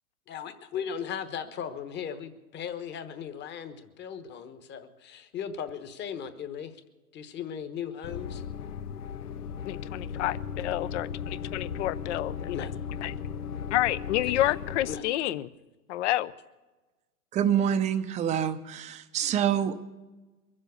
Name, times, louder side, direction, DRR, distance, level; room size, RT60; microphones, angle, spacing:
voice 1, 0.3-6.8 7.1-8.4 12.5-12.7 14.3-14.4 14.9-15.0, left 8 dB, 25° left, 9 dB, 1.2 m, -37 dB
sound 1, 8.0-15.0, left 7 dB, 85° left, 0.8 m, -36 dB
voice 2, 9.6-12.6 13.0-13.1 13.7-15.5 15.9-16.3, left 15 dB, 50° left, 16 dB, 0.8 m, -29 dB
voice 3, 17.3-19.8, right 9 dB, 15° right, 9 dB, 0.6 m, -26 dB
22.5 x 7.6 x 8.2 m, 1.2 s
hypercardioid pair, 120°, 45 cm